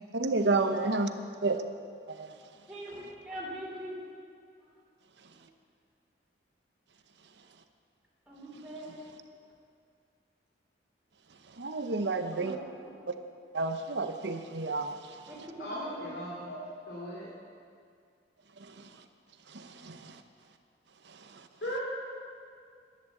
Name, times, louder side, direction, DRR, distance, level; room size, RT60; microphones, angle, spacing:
voice 1, 0.1-1.1 1.4-1.6 2.1-2.4 11.5-12.6 13.5-15.3 18.6-19.0 19.5-20.2 21.0-21.5, right 3 dB, 70° right, 8 dB, 0.9 m, -31 dB
voice 2, 2.7-4.0 5.3-5.4 8.3-9.0 12.3-12.6 12.8-12.9 15.3-16.1, right 1 dB, 5° right, -6 dB, 3.4 m, -42 dB
voice 3, 15.6-16.5 16.9-17.3 21.6-21.8, equal, 70° left, -5 dB, 2.6 m, -37 dB
11.0 x 11.0 x 7.9 m, 2.3 s
head